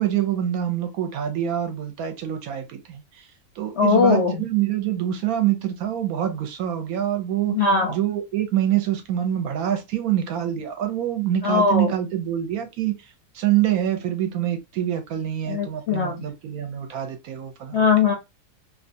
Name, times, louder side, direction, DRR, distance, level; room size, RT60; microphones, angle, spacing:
voice 1, 0.0-3.3 3.6-7.6 7.9-13.0 13.3-17.8, right 11 dB, 70° right, 1.0 m, -25 dB
voice 2, 3.8-4.4 7.5-8.0 11.4-11.9 15.5-16.3 17.7-18.1, left 5 dB, 65° left, 0.7 m, -20 dB
2.6 x 2.3 x 2.6 m
omnidirectional pair, 1.7 m